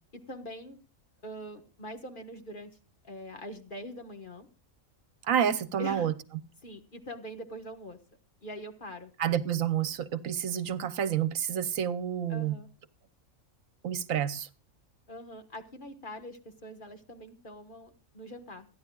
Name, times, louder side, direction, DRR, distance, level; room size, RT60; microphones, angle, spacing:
voice 1, 0.1-0.8 1.2-2.8 3.0-4.5 5.8-6.1 6.6-8.0 8.4-9.1 12.3-12.7 15.1-18.7, equal, 40° left, 1.5 m, -43 dB
voice 2, 5.2-6.1 9.2-12.6 13.8-14.5, right 9 dB, 75° right, 1.2 m, -29 dB
28.5 x 10.5 x 2.3 m
omnidirectional pair, 1.4 m